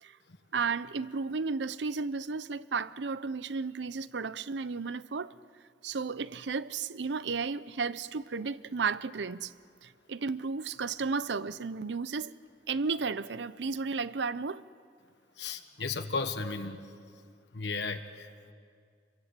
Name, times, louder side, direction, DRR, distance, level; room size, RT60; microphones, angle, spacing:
voice 1, 0.5-5.3 5.8-9.5 9.8-12.3 12.7-14.6, right 4 dB, 75° right, 0.6 m, -33 dB
voice 2, 15.4-16.8 17.5-18.5, left 4 dB, 70° left, 1.4 m, -35 dB
27.5 x 22.0 x 8.3 m
head